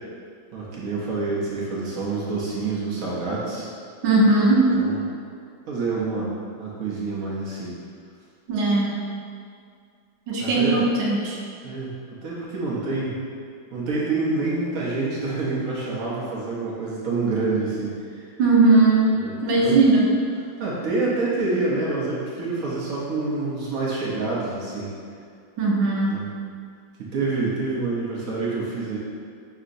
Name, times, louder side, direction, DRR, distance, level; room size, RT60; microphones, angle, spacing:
voice 1, 0.5-3.7 4.7-5.0 5.7-6.3 6.6-7.8 10.4-10.8 11.6-13.2 13.7-18.3 19.2-19.8 20.6-24.9 26.1-26.3 27.0-29.0, right 3 dB, 60° right, -6 dB, 0.9 m, -27 dB
voice 2, 4.0-4.7 8.5-8.9 10.3-11.4 18.4-20.1 25.6-26.1, right 2 dB, 80° right, -4 dB, 1.3 m, -18 dB
5.6 x 2.8 x 2.5 m, 2.3 s
omnidirectional pair, 2.1 m